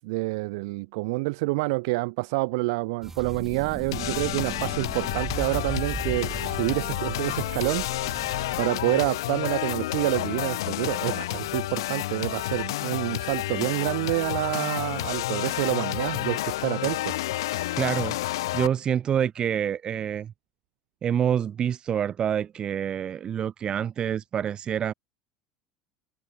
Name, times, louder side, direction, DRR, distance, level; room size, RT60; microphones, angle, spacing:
voice 1, 0.0-17.7, right 25 dB, 60° right, 0.4 m, -28 dB
sound 1, 3.0-8.7, right 3 dB, 15° right, 1.6 m, -37 dB
sound 2, 3.9-18.7, left 16 dB, 65° left, 0.5 m, -30 dB
voice 2, 17.8-20.3 21.0-24.9, right 9 dB, 35° right, 1.8 m, -27 dB
figure-of-eight pair, 70°, 3 cm